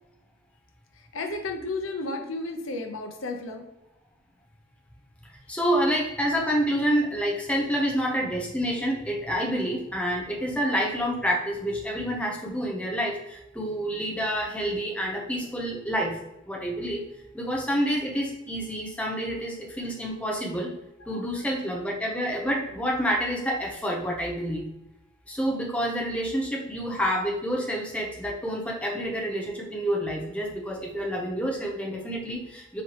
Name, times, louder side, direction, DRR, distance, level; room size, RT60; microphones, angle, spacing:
voice 1, 1.1-3.7 6.4-6.5 21.1-21.2, left 2 dB, 90° left, 4 dB, 0.6 m, -33 dB
voice 2, 5.5-16.2 16.5-17.0 17.3-20.7 21.1-24.7 25.3-32.8, equal, 5° left, -1 dB, 0.6 m, -28 dB
4.2 x 3.2 x 2.8 m, 0.87 s
head